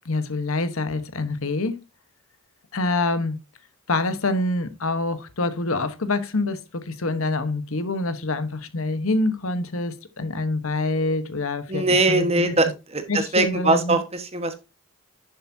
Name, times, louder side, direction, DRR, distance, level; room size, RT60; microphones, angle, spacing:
voice 1, 0.0-1.7 2.7-3.4 3.9-12.5 13.1-14.0, left 2 dB, 75° left, 1.1 m, -26 dB
voice 2, 11.7-14.6, right 2 dB, 30° right, 1.2 m, -22 dB
10.5 x 7.1 x 2.7 m
head